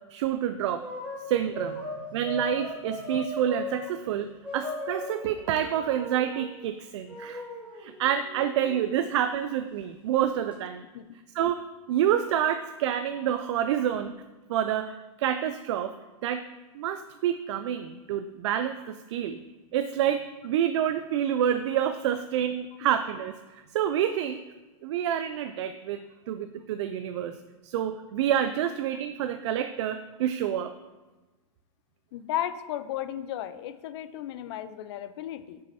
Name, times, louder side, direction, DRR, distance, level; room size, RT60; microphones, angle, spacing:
voice 1, 0.1-0.8 1.3-1.8 2.1-4.3 4.5-7.4 7.8-10.8 11.3-11.6 11.9-14.1 14.5-15.9 16.2-16.4 16.7-19.4 19.7-24.4 24.8-26.0 26.3-27.3 27.6-30.7, right 10 dB, 55° right, 10 dB, 0.4 m, -28 dB
sound 1, 0.6-3.9 4.4-6.5 7.1-9.0, left 1 dB, 5° right, 1.4 m, -37 dB
voice 2, 32.1-35.6, left 11 dB, 50° left, 12 dB, 0.5 m, -34 dB
6.7 x 5.4 x 4.2 m, 1.2 s
supercardioid pair, 155°, 17 cm